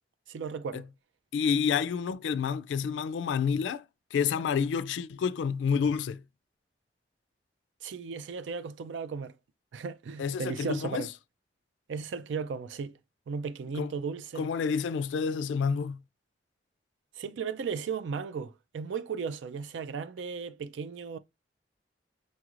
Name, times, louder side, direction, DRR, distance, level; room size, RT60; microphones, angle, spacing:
voice 1, 0.3-0.8 7.8-9.3 9.7-11.1 11.9-12.9 13.3-14.5 17.2-21.2, right 5 dB, 85° right, 0.4 m, -35 dB
voice 2, 1.3-3.8 4.1-6.2 10.2-11.1 13.8-13.9 14.4-16.0, left 6 dB, 80° left, 0.3 m, -29 dB
5.4 x 2.4 x 3.0 m
head